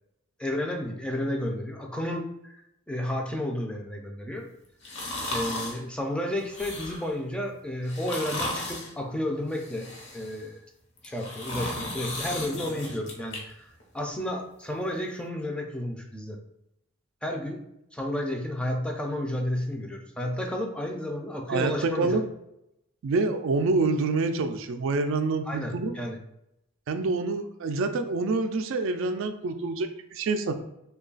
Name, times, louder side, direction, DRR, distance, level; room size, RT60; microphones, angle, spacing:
voice 1, 0.4-2.6 2.9-4.5 5.3-9.9 10.1-10.6 11.0-13.7 13.9-16.4 17.2-17.6 17.9-22.2 25.5-26.2, left 1 dB, 5° left, 2 dB, 0.4 m, -32 dB
sound 1, 4.8-5.8 6.4-7.1 7.8-8.9 9.5-10.4 11.0-13.4 13.8-13.9, left 1 dB, 60° left, 0.9 m, -35 dB
voice 2, 21.5-22.2 23.0-25.9 26.9-30.5, right 3 dB, 65° right, 7 dB, 0.4 m, -27 dB
3.1 x 2.3 x 3.8 m, 0.83 s
head